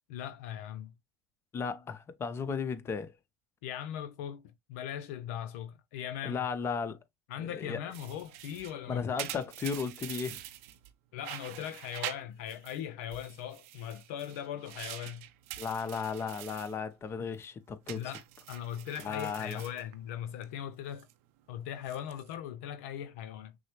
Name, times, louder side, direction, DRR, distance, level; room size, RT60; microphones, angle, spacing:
voice 1, 0.1-0.9 3.6-4.4 4.7-6.4 7.3-9.3 11.1-15.3 17.9-18.2 18.5-21.1 21.5-23.6, left 10 dB, 75° left, 0.4 m, -39 dB
voice 2, 1.5-3.1 6.2-7.0 7.4-7.8 8.9-10.4 15.6-18.0 19.0-19.6, left 5 dB, 35° left, 0.8 m, -35 dB
sound 1, 7.9-10.9 11.2-12.8 13.1-16.8 17.1-17.4 17.9-20.4 20.7-21.1 21.7-22.3, right 14 dB, 75° right, 0.5 m, -45 dB
6.1 x 2.1 x 3.0 m
hypercardioid pair, 85°, 8 cm